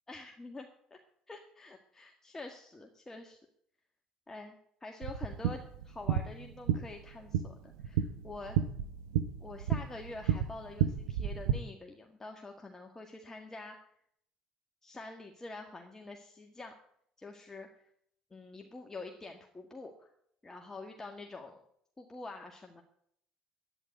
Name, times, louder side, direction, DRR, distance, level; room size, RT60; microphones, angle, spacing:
voice 1, 0.1-1.0 1.3-3.4 4.3-8.6 9.4-13.8 14.8-16.7 17.2-17.7 18.3-20.1 20.4-21.6 22.0-22.8, left 2 dB, 20° left, 2 dB, 1.9 m, -46 dB
sound 1, 5.0-11.5, right 9 dB, 85° right, 0.9 m, -32 dB
11.0 x 9.8 x 9.4 m, 0.68 s
supercardioid pair, 75°, 2 cm